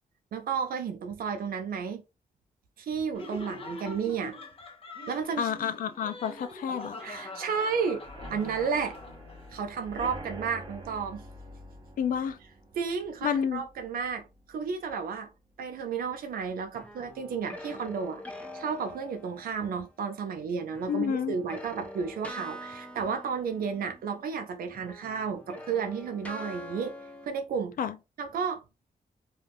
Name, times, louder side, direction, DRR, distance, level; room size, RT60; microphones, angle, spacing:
voice 1, 0.3-2.0 2.8-4.4 5.1-5.5 7.0-8.0 8.3-9.0 9.5-11.2 12.8-15.3 15.6-18.2 18.5-26.9 27.2-27.7 28.2-28.6, right 6 dB, 75° right, 0.5 m, -32 dB
Laughter, 3.1-9.5, left 2 dB, 40° left, 0.7 m, -43 dB
voice 2, 5.4-7.0 12.0-12.4 13.2-13.6 20.9-21.4 27.8-28.0, left 8 dB, 65° left, 0.4 m, -29 dB
sound 1, 8.0-15.7 16.0-16.4 16.7-16.8 17.2-17.3, equal, 30° right, 0.7 m, -46 dB
sound 2, 16.7-19.8 20.7-24.4 24.7-27.3, left 1 dB, 10° left, 0.5 m, -44 dB
2.4 x 2.2 x 3.3 m
wide cardioid pair, 120°, 15 cm